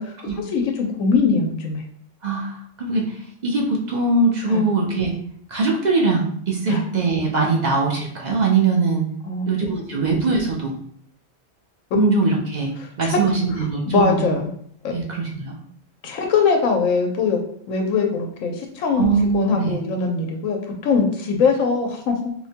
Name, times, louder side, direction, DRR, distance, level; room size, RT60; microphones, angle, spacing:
voice 1, 0.0-1.8 4.5-4.6 6.7-6.8 9.2-10.0 12.8-13.2 13.9-14.5 14.8-14.9 16.0-17.4 17.7-19.1 19.3-22.2, left 5 dB, 90° left, 2 dB, 1.0 m, -22 dB
voice 2, 2.2-5.2 5.5-9.0 9.4-10.7 11.9-14.2 14.9-15.6 19.0-19.8, right 3 dB, 55° right, -1 dB, 0.5 m, -21 dB
4.6 x 2.1 x 2.7 m, 0.64 s
omnidirectional pair, 1.3 m